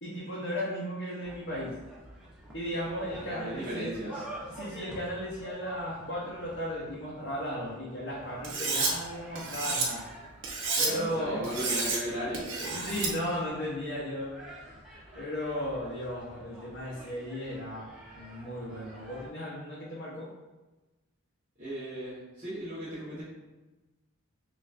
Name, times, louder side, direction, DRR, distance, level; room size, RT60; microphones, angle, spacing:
voice 1, 0.0-1.8 2.5-3.9 4.5-10.0 10.8-11.5 12.7-14.4 15.1-17.9 18.1-20.3, equal, 50° left, -7 dB, 0.7 m, -35 dB
sound 1, 1.2-19.3, right 1 dB, 5° right, 0.5 m, -48 dB
voice 2, 3.2-4.2 10.8-12.5 21.6-23.2, equal, 30° right, -13 dB, 1.1 m, -36 dB
Cutlery silverware, 8.4-8.9 9.4-9.9 10.4-10.9 11.4-12.0 12.3-13.1, right 4 dB, 55° right, 0.7 m, -30 dB
5.3 x 2.4 x 2.4 m, 1.1 s
head